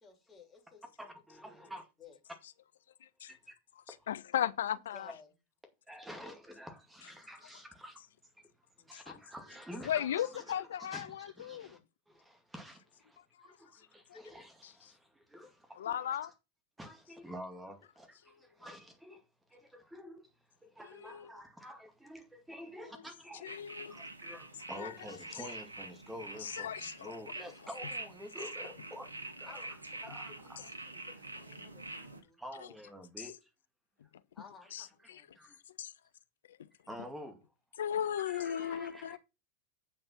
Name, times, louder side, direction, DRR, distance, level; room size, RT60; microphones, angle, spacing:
voice 1, 0.0-0.9 1.4-1.7 2.0-2.2 4.7-5.3 8.8-8.9 9.4-10.1 22.6-22.9 29.4-29.7 30.0-32.7 34.3-35.3, left 4 dB, 15° left, 3.8 m, -57 dB
voice 2, 1.0-1.8 3.3-3.5 5.9-8.0 8.9-11.8 12.1-15.0 15.3-16.3 16.8-19.2 19.5-20.3 20.6-23.5 23.9-29.8 30.1-30.7 31.9-32.1 32.4-33.4 34.6-34.7 35.4-35.6 36.9-37.4 38.1-39.2, equal, 5° right, 2.2 m, -49 dB
voice 3, 4.1-5.1 8.9-9.1 9.8-11.8 14.1-14.2 15.8-16.3 21.0-21.3 23.4-24.0 24.8-24.9 26.4-27.1 34.7-35.2 35.8-35.9 36.5-36.6 37.8-39.2, left 10 dB, 60° left, 0.6 m, -36 dB
sound 1, 23.5-32.2, right 2 dB, 80° right, 1.3 m, -46 dB
8.7 x 5.4 x 5.8 m
figure-of-eight pair, 90°, 0 cm